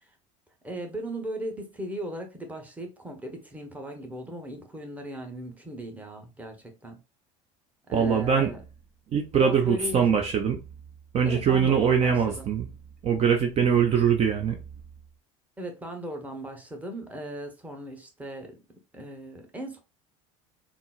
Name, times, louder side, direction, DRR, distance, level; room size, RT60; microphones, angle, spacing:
voice 1, 0.6-7.0 7.9-8.6 9.3-10.1 11.2-12.4 15.6-18.6 18.9-19.8, equal, 10° right, 0.9 m, -37 dB
voice 2, 7.9-8.5 9.1-10.6 11.1-12.7 13.0-14.5, right 7 dB, 40° right, 0.5 m, -22 dB
3.8 x 2.0 x 2.3 m
hypercardioid pair, 85°, 17 cm